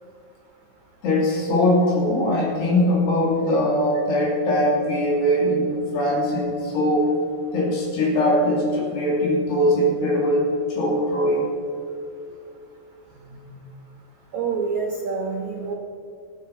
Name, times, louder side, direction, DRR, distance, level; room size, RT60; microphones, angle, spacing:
voice 1, 1.0-7.1 7.5-11.5 13.2-13.4, left 1 dB, 75° left, -4 dB, 4.8 m, -21 dB
voice 2, 14.3-15.7, right 5 dB, 60° right, 1 dB, 2.1 m, -27 dB
21.0 x 8.0 x 4.2 m, 2.6 s
omnidirectional pair, 4.8 m